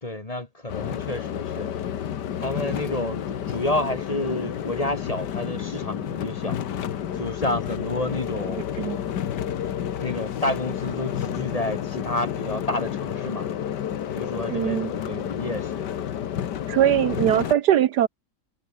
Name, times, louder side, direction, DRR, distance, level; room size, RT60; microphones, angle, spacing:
voice 1, 0.0-1.7 2.4-6.6 7.1-8.7 10.0-13.5 14.1-15.9, left 1 dB, 20° left, 1.7 m, -30 dB
sound 1, 0.7-17.5, left 9 dB, 70° left, 1.8 m, -30 dB
voice 2, 14.5-14.9 16.7-18.1, right 11 dB, 70° right, 1.3 m, -21 dB
omnidirectional pair, 1.9 m